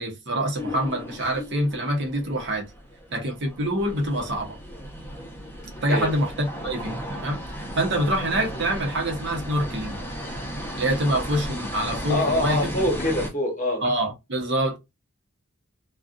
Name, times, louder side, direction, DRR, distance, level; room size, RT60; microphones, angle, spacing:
voice 1, 0.0-2.7 3.1-4.6 5.8-10.0 10.7-12.6 13.8-14.8, right 1 dB, 60° right, 0.9 m, -26 dB
sound 1, 0.6-13.3, equal, 10° left, 0.8 m, -35 dB
voice 2, 5.8-6.1 12.1-13.8, left 1 dB, 40° left, 1.1 m, -25 dB
2.5 x 2.3 x 2.4 m
head